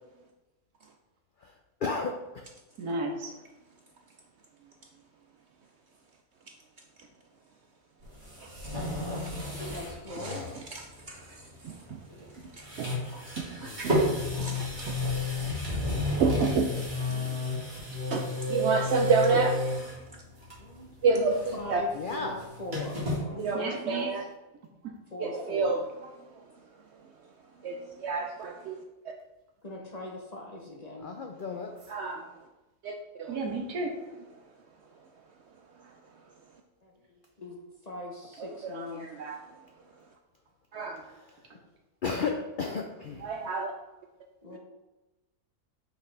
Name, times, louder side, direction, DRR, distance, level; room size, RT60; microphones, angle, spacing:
voice 1, 1.8-2.5 8.9-9.3 9.5-9.6 10.1-10.6 11.1-11.2 13.6-13.8 21.9-22.5 31.0-31.9 42.0-43.3, left 4 dB, 80° left, 3 dB, 0.4 m, -34 dB
voice 2, 2.8-3.4 23.5-24.1 24.8-25.0 33.3-34.0 35.8-35.9 41.5-41.6, right 2 dB, 85° right, 2 dB, 1.6 m, -34 dB
scraping chair, 8.0-10.0 10.3-10.4 12.1-12.3 12.6-20.0 20.4-20.8 21.1-23.2, left 1 dB, 30° right, 2.1 m, -31 dB
voice 3, 8.4-8.7 10.1-12.1 12.4-14.0 14.3-15.2 16.0-16.7 17.2-17.4 18.1-20.2 21.0-21.8 23.4-24.3 25.2-27.1 27.6-29.1 31.9-32.3 32.8-33.4 35.8-35.9 38.4-39.7 40.0-40.1 40.7-41.0 43.2-43.7 44.5-44.6, right 4 dB, 70° right, 3 dB, 0.6 m, -31 dB
voice 4, 9.7-10.4 14.8-15.0 17.0-17.4 20.6-24.1 25.1-25.8 29.6-31.1 36.8-37.6 37.8-39.1 44.4-44.6, left 1 dB, 35° left, -1 dB, 0.7 m, -41 dB
5.8 x 5.8 x 3.3 m, 1.1 s
omnidirectional pair, 1.6 m